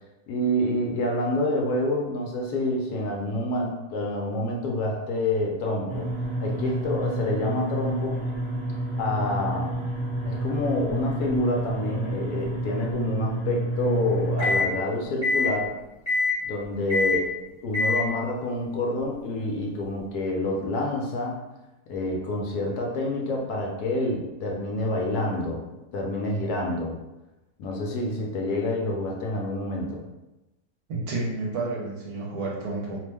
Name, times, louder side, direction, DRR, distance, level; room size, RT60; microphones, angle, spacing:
voice 1, 0.3-6.1 6.4-8.2 9.0-9.7 10.3-15.8 16.4-17.3 17.6-21.4 21.9-25.6 25.9-27.0 27.6-30.0, left 1 dB, 75° left, -1 dB, 1.1 m, -27 dB
sound 1, 5.9-14.7 15.2-15.5 16.1-16.4 16.9-17.2 17.7-18.1, left 1 dB, 35° left, 0.4 m, -28 dB
voice 2, 30.9-33.0, right 3 dB, 70° right, -2 dB, 1.1 m, -30 dB
2.8 x 2.1 x 3.2 m, 0.99 s
omnidirectional pair, 1.8 m